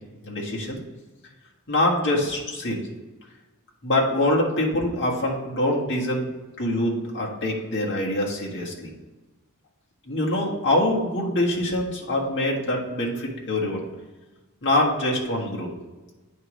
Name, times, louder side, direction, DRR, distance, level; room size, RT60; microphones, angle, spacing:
voice 1, 0.2-0.8 1.7-2.8 3.8-6.3 6.6-8.9 10.1-13.8 14.6-15.7, left 1 dB, 55° left, -3 dB, 1.6 m, -24 dB
9.0 x 3.1 x 5.0 m, 1.2 s
head